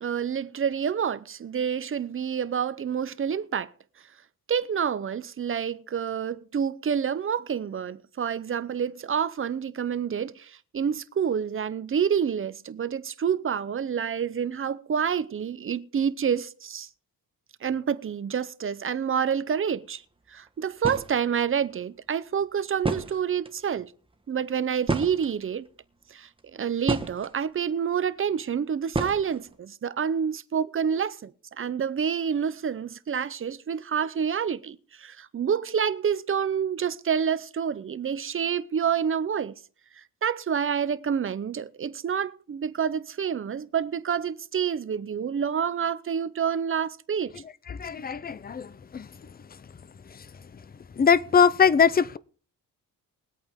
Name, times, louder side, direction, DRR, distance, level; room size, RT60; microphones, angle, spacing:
voice 1, 0.0-3.7 4.5-16.9 17.6-20.0 20.3-23.9 24.3-25.7 26.1-31.3 31.6-39.5 40.2-47.3, right 7 dB, 35° right, 0.7 m, -28 dB
sound 1, 20.5-20.6 20.8-21.2 22.4-22.5 22.8-23.6 24.9-25.7 26.4-27.3 28.9-29.6, right 2 dB, 15° right, 1.3 m, -30 dB
voice 2, 47.7-49.1 51.0-52.2, left 6 dB, 25° left, 0.5 m, -21 dB
21.5 x 8.5 x 3.6 m
cardioid pair, 130°, 35 cm